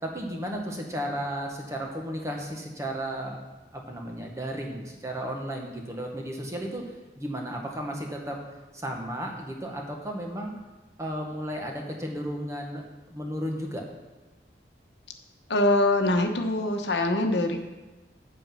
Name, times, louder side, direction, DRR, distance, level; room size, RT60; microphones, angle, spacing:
voice 1, 0.0-3.4 3.7-6.8 7.1-8.4 8.7-10.5 11.0-13.8, equal, 15° right, 1 dB, 1.4 m, -34 dB
voice 2, 15.5-17.6, left 2 dB, 85° left, 4 dB, 1.1 m, -23 dB
8.2 x 7.6 x 5.6 m, 1.2 s
head